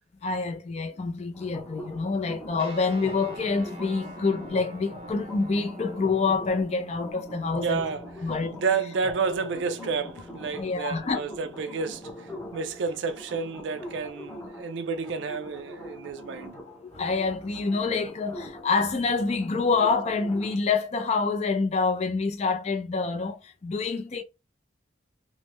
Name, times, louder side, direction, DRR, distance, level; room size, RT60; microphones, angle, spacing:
voice 1, 0.2-7.8 8.2-8.6 10.6-11.2 16.7-24.2, left 4 dB, 35° left, 0.4 m, -27 dB
sound 1, 1.3-20.6, left 1 dB, 10° left, 0.7 m, -43 dB
sound 2, 2.6-13.2, right 1 dB, 30° right, 0.6 m, -46 dB
voice 2, 7.5-8.3 8.6-16.6, right 5 dB, 75° right, 0.4 m, -30 dB
3.4 x 2.0 x 3.0 m
head